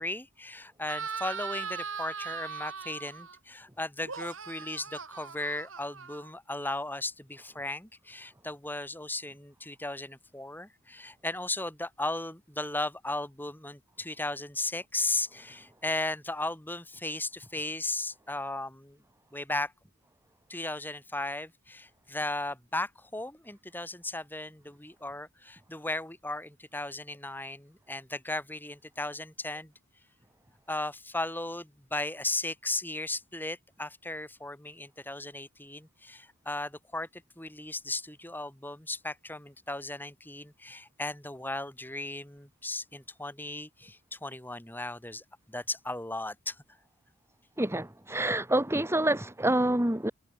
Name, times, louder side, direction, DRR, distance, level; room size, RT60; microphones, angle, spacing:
voice 1, 0.0-19.0 19.3-19.7 20.5-29.7 30.7-46.6, left 2 dB, 10° left, 5.7 m, -36 dB
sound 1, 0.9-3.4 4.0-6.6, right 5 dB, 70° right, 4.4 m, -39 dB
voice 2, 47.6-50.1, right 1 dB, 10° right, 1.6 m, -27 dB
head